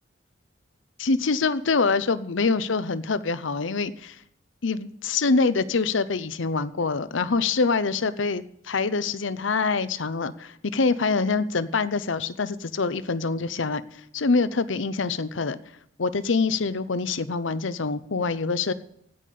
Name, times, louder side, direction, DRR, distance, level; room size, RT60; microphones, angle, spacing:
voice 1, 1.0-4.2 4.6-13.8 14.1-15.6 16.0-18.7, left 4 dB, 85° left, 15 dB, 0.7 m, -25 dB
17.0 x 5.6 x 6.8 m, 0.71 s
head